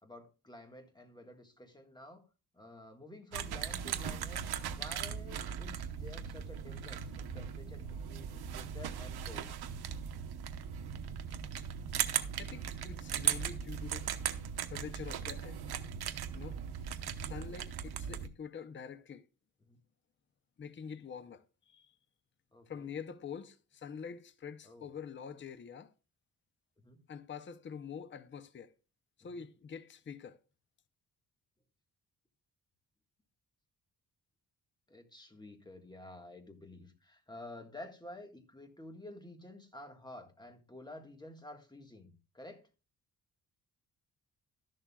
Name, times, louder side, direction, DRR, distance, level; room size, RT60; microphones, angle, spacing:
voice 1, 0.0-2.2 2.5-9.6 19.6-19.8 22.5-22.9 24.6-24.9 26.8-27.0 29.2-29.5 34.9-42.6, left 1 dB, 10° left, 1.6 m, -51 dB
sound 1, 3.3-18.3, right 8 dB, 90° right, 1.0 m, -38 dB
voice 2, 12.4-14.1 14.7-15.8 16.3-17.0 17.2-19.3 20.6-21.9 22.7-25.9 27.1-28.7 29.2-30.4, left 7 dB, 30° left, 0.7 m, -46 dB
13.0 x 11.5 x 2.3 m
wide cardioid pair, 145°, 38 cm